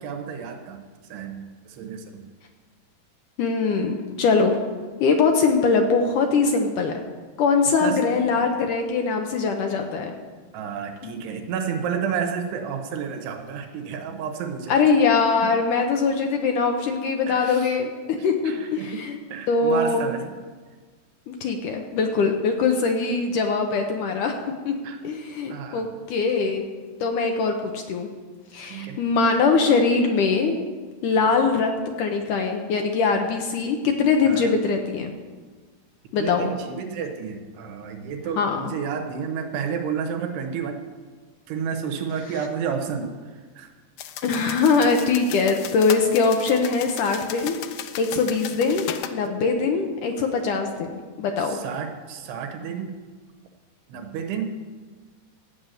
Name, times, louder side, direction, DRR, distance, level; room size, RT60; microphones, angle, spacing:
voice 1, 0.0-2.3 7.8-8.4 10.5-14.8 15.4-15.5 17.3-17.8 18.4-19.0 19.3-20.4 24.8-25.0 25.5-25.9 28.7-29.0 34.2-34.5 36.2-40.8 41.5-43.2 43.6-43.7 51.4-52.9 53.9-54.6, right 7 dB, 90° right, 4 dB, 3.2 m, -31 dB
voice 2, 3.4-4.6 5.0-7.0 7.4-10.1 11.0-11.1 14.7-19.2 19.5-20.1 21.3-24.4 24.7-24.8 25.0-26.7 27.0-28.1 28.5-30.6 31.0-31.7 32.0-35.1 36.1-36.5 38.4-38.7 44.2-47.6 48.0-51.6, left 4 dB, 70° left, 3 dB, 2.1 m, -22 dB
sound 1, 44.0-49.2, left 10 dB, 90° left, 1.8 m, -36 dB
14.0 x 6.7 x 9.0 m, 1.4 s
omnidirectional pair, 4.6 m